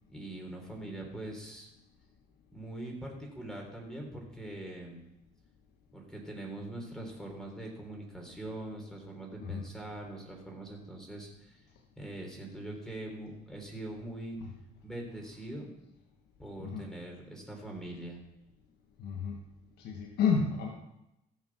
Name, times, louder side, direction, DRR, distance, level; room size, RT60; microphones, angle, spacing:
voice 1, 0.1-1.7 2.5-5.0 5.9-11.6 12.0-14.4 14.8-15.7 16.4-18.2, right 1 dB, 5° left, 1 dB, 3.7 m, -42 dB
voice 2, 16.6-16.9 19.0-19.5 19.8-20.7, left 6 dB, 75° left, 2 dB, 1.3 m, -31 dB
15.5 x 6.5 x 6.0 m, 0.88 s
cardioid pair, 110°, 17 cm